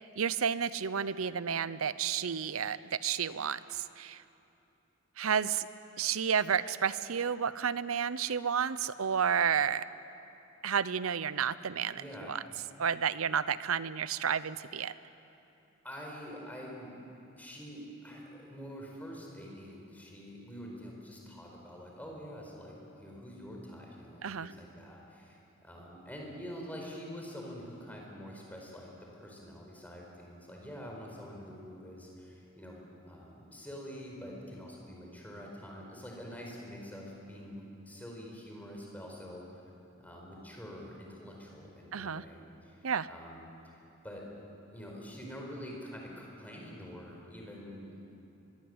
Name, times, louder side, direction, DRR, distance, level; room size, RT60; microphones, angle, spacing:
voice 1, 0.2-4.2 5.2-5.7 6.0-9.8 10.6-12.4 12.8-14.9 24.2-24.5 41.9-42.2 42.8-43.1, right 7 dB, 85° right, 16 dB, 0.7 m, -31 dB
voice 2, 11.9-12.3 15.8-16.9 17.4-39.6 40.0-42.8 43.1-44.2 44.7-48.0, equal, 10° left, -1 dB, 4.7 m, -46 dB
24.5 x 22.0 x 8.0 m, 2.8 s
head